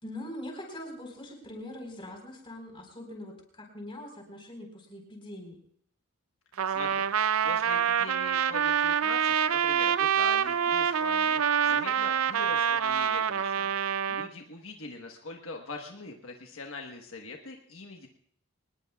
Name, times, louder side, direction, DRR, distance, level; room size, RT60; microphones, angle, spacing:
voice 1, 0.0-5.6, left 1 dB, 25° left, 1 dB, 4.2 m, -42 dB
voice 2, 6.6-7.0 7.4-13.7 14.1-18.1, left 3 dB, 70° left, 2 dB, 1.3 m, -42 dB
Trumpet, 6.6-14.3, right 8 dB, 80° right, 0.5 m, -26 dB
24.0 x 19.5 x 2.4 m, 0.65 s
head